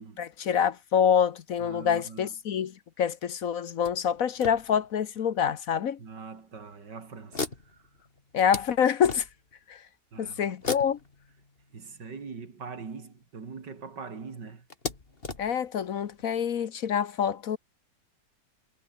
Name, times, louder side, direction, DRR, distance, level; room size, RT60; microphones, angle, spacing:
voice 1, 0.2-2.7 3.0-6.0 8.3-9.2 9.7-9.8 10.2-11.0 15.4-17.6, left 8 dB, 55° left, 1.2 m, -26 dB
voice 2, 1.6-2.4 6.0-7.9 10.1-10.5 11.7-14.7, right 5 dB, 85° right, 3.4 m, -42 dB
sound 1, 3.8-5.2 5.9-6.0 6.4-6.6 7.3-9.6 10.6-12.3 13.4-13.5 13.8-13.9 14.7-16.3, left 3 dB, 35° left, 2.6 m, -39 dB
omnidirectional pair, 1.8 m